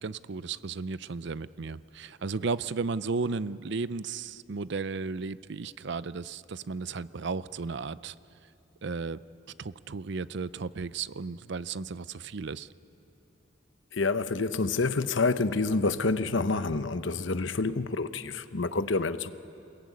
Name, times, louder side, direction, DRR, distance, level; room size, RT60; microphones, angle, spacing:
voice 1, 0.0-8.1 8.8-9.2 9.6-12.7, right 4 dB, 60° right, 0.6 m, -34 dB
voice 2, 13.9-19.3, left 3 dB, 70° left, 0.9 m, -28 dB
27.0 x 21.5 x 9.4 m
head